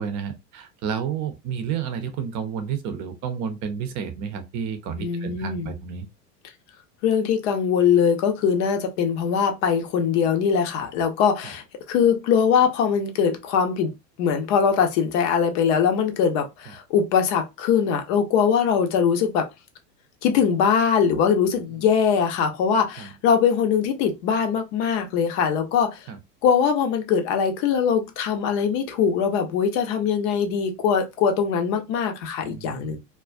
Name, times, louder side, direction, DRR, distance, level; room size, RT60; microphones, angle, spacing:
voice 1, 0.0-6.1 11.4-11.5 23.0-23.1 26.1-26.2 32.4-33.0, right 7 dB, 35° right, 0.7 m, -31 dB
voice 2, 5.0-5.7 7.0-19.5 20.2-26.0 26.4-33.0, left 7 dB, 45° left, 0.7 m, -22 dB
2.3 x 2.2 x 2.4 m
figure-of-eight pair, 85°, 49 cm